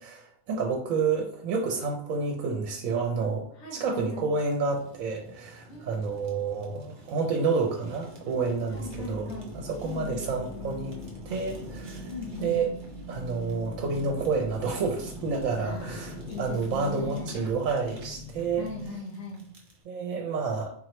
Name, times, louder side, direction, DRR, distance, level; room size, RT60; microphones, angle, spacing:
voice 1, 0.0-3.5 3.7-9.3 9.5-11.0 11.3-12.1 12.4-12.7 13.1-18.7 19.9-20.7, right 4 dB, 75° right, 2 dB, 1.0 m, -29 dB
voice 2, 3.5-4.3 5.7-6.2 8.7-9.5 9.8-10.3 12.1-12.6 15.6-17.3 18.6-19.4, left 3 dB, 65° left, -4 dB, 1.3 m, -39 dB
Fire, 4.7-19.8, equal, 40° right, 0.8 m, -46 dB
sound 1, 8.7-18.9, left 2 dB, 40° left, 0.3 m, -42 dB
4.0 x 3.0 x 3.0 m, 0.62 s
omnidirectional pair, 1.5 m